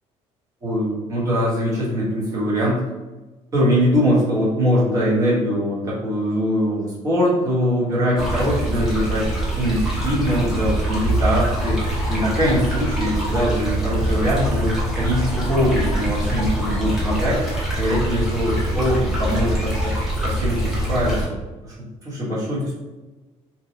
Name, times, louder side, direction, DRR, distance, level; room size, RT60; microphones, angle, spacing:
voice 1, 0.6-2.9 3.5-9.2 9.6-11.8 12.1-19.9 20.2-21.2 21.6-22.8, equal, 25° right, -8 dB, 1.1 m, -22 dB
sound 1, 8.2-21.3, right 1 dB, 5° right, 0.8 m, -24 dB
2.7 x 2.2 x 3.1 m, 1.2 s
cardioid pair, 170°, 13 cm